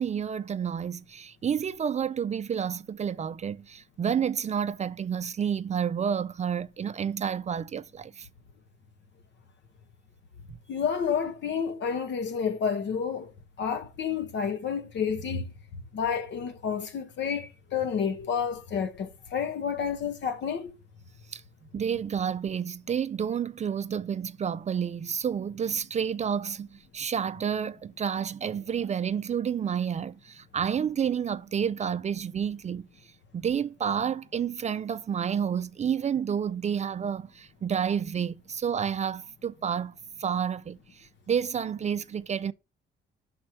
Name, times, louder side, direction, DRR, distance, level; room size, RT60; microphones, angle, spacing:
voice 1, 0.0-8.3 21.3-21.4 21.7-32.9 33.3-42.5, right 8 dB, 35° right, 0.4 m, -30 dB
voice 2, 10.7-13.3 13.6-15.5 15.9-20.7, left 7 dB, 65° left, 1.1 m, -30 dB
6.0 x 4.3 x 4.4 m
cardioid pair, 90°, 20 cm